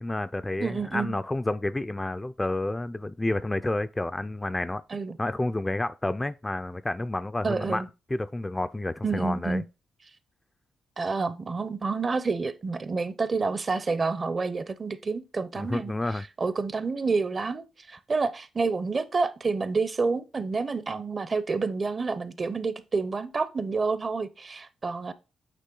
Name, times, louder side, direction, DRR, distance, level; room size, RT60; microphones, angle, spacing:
voice 1, 0.0-4.8 5.2-7.8 8.1-9.6 15.6-16.3, left 2 dB, 15° left, 0.3 m, -30 dB
voice 2, 0.6-1.2 4.9-5.2 7.4-7.9 9.0-9.6 11.0-15.9 16.4-25.1, right 4 dB, 40° right, 0.6 m, -28 dB
8.4 x 3.1 x 3.8 m
cardioid pair, 80°, 0 cm